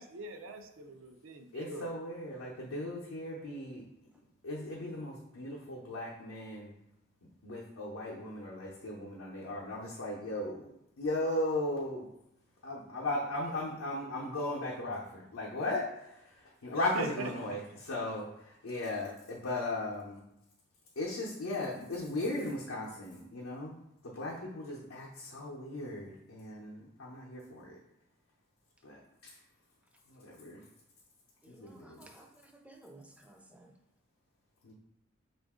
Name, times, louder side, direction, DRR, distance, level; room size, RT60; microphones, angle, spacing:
voice 1, 0.0-1.9 16.7-17.6, right 2 dB, 80° right, 6 dB, 0.5 m, -42 dB
voice 2, 1.5-3.8 4.4-6.7 7.4-10.7 11.0-12.1 12.6-15.9 16.6-17.6 17.8-18.3 18.6-20.2 21.0-23.7 24.0-27.8 28.8-29.3 30.1-30.6 31.5-32.1 34.6-34.7, left 1 dB, 90° left, -4 dB, 0.7 m, -37 dB
voice 3, 31.4-33.7, right 2 dB, 5° right, 3 dB, 0.4 m, -56 dB
5.4 x 2.5 x 3.5 m, 0.83 s
head